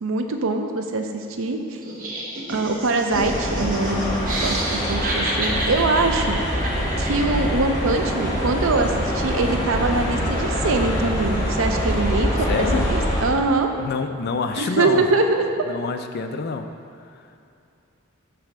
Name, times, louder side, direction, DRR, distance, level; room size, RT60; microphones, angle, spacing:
voice 1, 0.0-1.8 2.5-6.4 7.0-13.7 14.6-15.5, right 3 dB, 75° right, 5 dB, 0.6 m, -23 dB
Laughter, 1.8-7.7, right 1 dB, 45° right, 0.9 m, -30 dB
sound 1, 3.1-13.2, equal, 20° left, 1.3 m, -24 dB
voice 2, 12.5-12.9 13.8-15.1 15.7-16.7, left 4 dB, 50° left, 7 dB, 0.4 m, -26 dB
6.8 x 3.3 x 6.1 m, 2.6 s
head